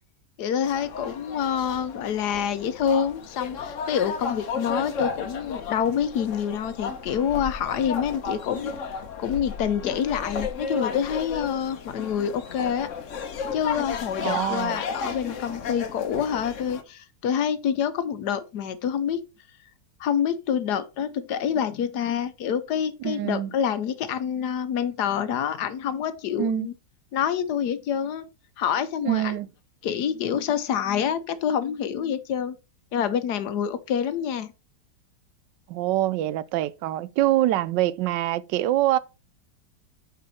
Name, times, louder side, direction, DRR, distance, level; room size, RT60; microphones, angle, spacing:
voice 1, 0.4-8.7 9.2-12.9 13.5-19.2 20.0-26.7 27.1-28.3 28.6-29.4 29.8-32.5 32.9-34.5, left 8 dB, 70° left, 1.3 m, -27 dB
sound 1, 0.6-16.8, left 5 dB, 55° left, 1.1 m, -34 dB
voice 2, 14.2-14.8 23.0-23.5 26.4-26.7 29.0-29.5 35.7-39.0, right 14 dB, 90° right, 1.2 m, -25 dB
6.9 x 5.4 x 4.3 m
omnidirectional pair, 1.9 m